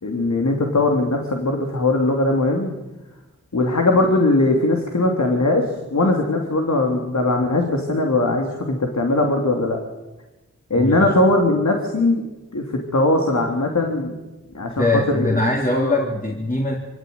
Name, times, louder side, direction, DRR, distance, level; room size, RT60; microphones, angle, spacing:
voice 1, 0.0-2.7 3.5-9.8 10.7-12.2 12.5-14.1 14.5-15.4 15.8-16.0, left 2 dB, 65° left, 2 dB, 3.3 m, -20 dB
voice 2, 10.8-11.1 14.8-16.8, left 2 dB, 25° left, -2 dB, 3.8 m, -21 dB
24.5 x 16.5 x 9.7 m, 1.1 s
cardioid pair, 50°, 31 cm